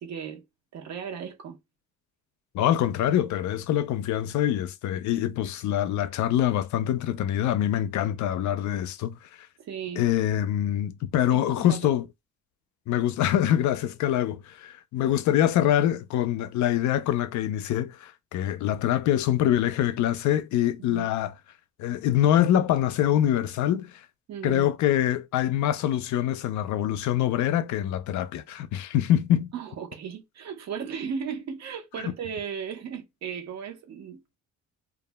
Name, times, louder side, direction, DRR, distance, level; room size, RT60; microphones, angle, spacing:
voice 1, 0.0-0.4 0.7-1.6 9.7-10.0 11.3-11.8 20.8-21.1 24.3-24.7 29.5-34.4, right 7 dB, 60° right, 0.8 m, -36 dB
voice 2, 2.5-9.2 10.0-12.0 12.9-21.3 21.8-23.9 24.4-29.5 32.0-32.1, left 11 dB, 70° left, 0.4 m, -24 dB
2.4 x 2.1 x 3.3 m
cardioid pair, 120°, 30 cm